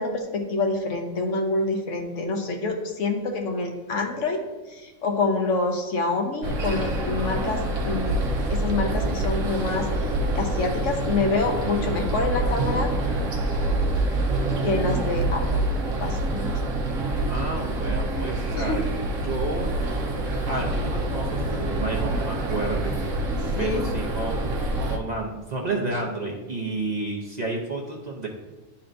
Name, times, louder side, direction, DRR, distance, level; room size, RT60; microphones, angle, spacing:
voice 1, 0.0-4.4 4.7-8.2 8.5-12.9 14.6-16.5 18.5-18.8 23.3-23.9, left 3 dB, 65° left, 3 dB, 1.1 m, -27 dB
sound 1, 6.4-25.0, right 2 dB, 70° right, 1.1 m, -26 dB
voice 2, 17.3-18.8 19.2-19.7 20.4-23.0 23.6-24.5 24.9-28.3, right 2 dB, 40° right, -2 dB, 0.8 m, -30 dB
10.5 x 4.3 x 2.6 m, 1.2 s
omnidirectional pair, 1.4 m